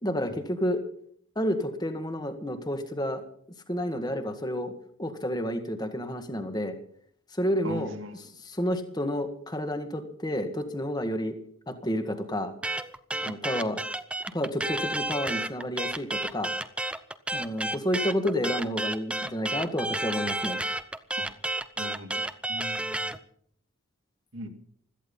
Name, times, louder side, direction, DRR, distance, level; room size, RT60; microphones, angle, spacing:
voice 1, 0.0-0.8 1.4-3.2 3.7-4.7 5.0-6.8 7.3-7.9 8.4-11.3 11.7-12.5 13.2-13.8 14.3-16.5 17.3-20.6, equal, 20° left, 7 dB, 1.8 m, -30 dB
voice 2, 7.6-8.3 21.2-21.3 21.8-22.2 22.5-23.1 24.3-24.5, right 1 dB, 60° right, 6 dB, 2.4 m, -39 dB
sound 1, 12.6-23.2, right 1 dB, 5° right, 0.7 m, -31 dB
16.5 x 14.0 x 5.5 m, 0.62 s
head